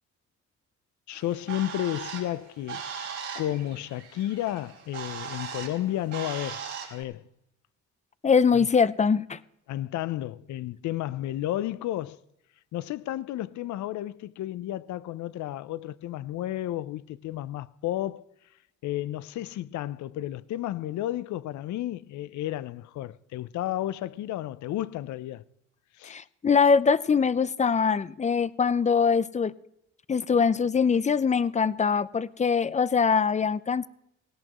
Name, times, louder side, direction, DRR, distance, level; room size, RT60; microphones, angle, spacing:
voice 1, 1.1-2.8 3.3-6.6 6.9-7.3 9.7-12.2 12.7-18.2 18.8-25.4 26.0-26.2, left 13 dB, 70° left, 0.5 m, -32 dB
Bird, 1.1-7.0, right 6 dB, 80° right, 3.9 m, -39 dB
voice 2, 8.2-9.4 26.0-29.5 30.1-33.9, left 6 dB, 25° left, 0.5 m, -23 dB
17.5 x 17.5 x 3.0 m
cardioid pair, 90°, 30 cm